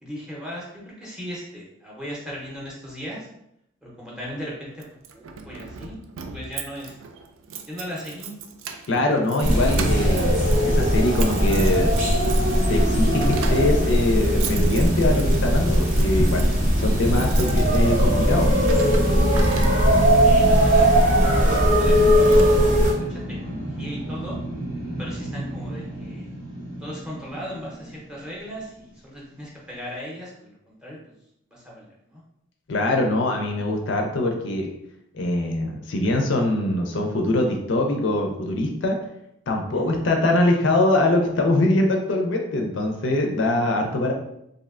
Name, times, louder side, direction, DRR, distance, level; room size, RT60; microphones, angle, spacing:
voice 1, 0.0-3.3 3.8-6.0 6.3-6.9 7.7-8.4 20.1-24.4 25.0-26.3 26.8-31.1 31.5-32.2 39.7-40.0, equal, 5° right, -5 dB, 0.6 m, -38 dB
Keys jangling, 4.8-20.2 20.9-21.2 21.7-21.8 22.0-22.9, right 6 dB, 75° right, 0.3 m, -37 dB
voice 2, 8.9-11.9 12.7-16.5 16.8-18.5 32.7-34.7 35.1-39.0 39.5-44.1, left 2 dB, 60° left, 2 dB, 0.4 m, -23 dB
sound 1, 9.4-22.9, equal, 40° right, 0.7 m, -19 dB
sound 2, 11.5-28.7, right 1 dB, 90° right, 0.9 m, -32 dB
3.1 x 2.6 x 2.4 m, 0.78 s
head